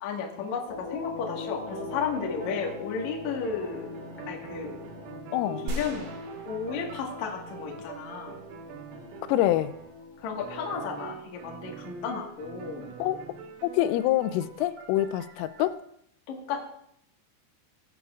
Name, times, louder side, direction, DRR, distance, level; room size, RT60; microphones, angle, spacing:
voice 1, 0.0-3.9 4.3-4.7 5.6-6.1 6.5-8.4 10.2-12.9 16.3-16.7, left 6 dB, 70° left, 0 dB, 1.7 m, -33 dB
sound 1, 0.7-10.9, left 4 dB, 45° left, 2.7 m, -42 dB
sound 2, 1.6-3.1 3.4-10.0 10.4-15.7, right 7 dB, 90° right, 4.0 m, -44 dB
voice 2, 5.3-5.7 9.3-9.7 13.0-13.2 13.6-15.7, left 14 dB, 90° left, 14 dB, 3.2 m, -26 dB
sound 3, 5.7-8.0, right 1 dB, 60° right, 3.1 m, -39 dB
17.5 x 8.5 x 2.4 m, 0.72 s
omnidirectional pair, 5.8 m